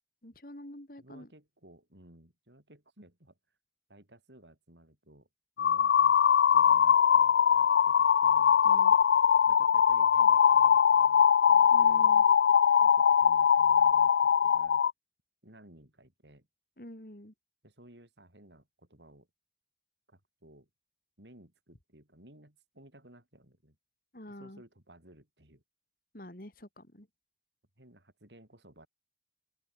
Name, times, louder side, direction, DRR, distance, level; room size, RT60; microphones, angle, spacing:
voice 1, 0.2-1.3 8.6-9.0 11.7-12.2 16.8-17.3 24.1-24.6 26.1-27.1, left 1 dB, 50° left, 3.3 m, -47 dB
voice 2, 1.0-3.4 3.9-5.3 5.6-6.2 6.5-8.6 9.5-12.3 12.8-14.8 15.4-16.5 17.6-19.3 20.1-20.7 21.2-23.8 24.3-25.6 27.8-28.9, right 1 dB, 80° right, 7.3 m, -57 dB
sound 1, 5.6-14.9, left 8 dB, 75° left, 0.3 m, -22 dB
open air
head